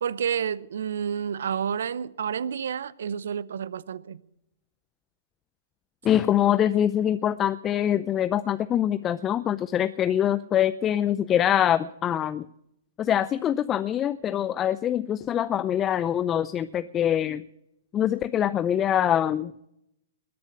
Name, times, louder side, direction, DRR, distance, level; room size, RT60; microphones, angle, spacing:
voice 1, 0.0-4.2, right 8 dB, 70° right, 0.6 m, -30 dB
voice 2, 6.0-12.4 13.0-17.4 17.9-19.7, left 10 dB, 25° left, 0.5 m, -24 dB
20.5 x 6.9 x 9.3 m
hypercardioid pair, 115°, 0 cm